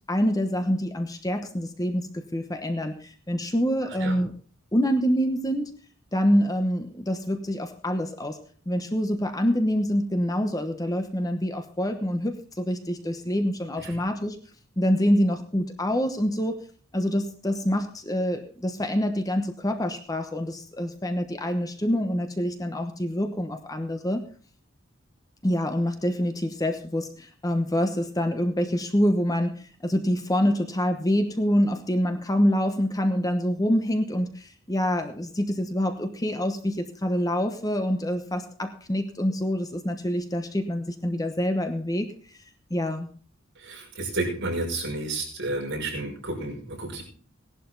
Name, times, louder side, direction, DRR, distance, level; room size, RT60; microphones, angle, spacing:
voice 1, 0.1-4.3 4.7-5.7 6.1-8.4 8.7-14.4 14.8-16.6 16.9-24.3 25.4-42.1 42.7-43.1, equal, 20° left, 6 dB, 1.0 m, -26 dB
voice 2, 43.6-47.0, right 2 dB, 60° right, -1 dB, 6.1 m, -31 dB
17.0 x 11.5 x 3.9 m, 0.43 s
head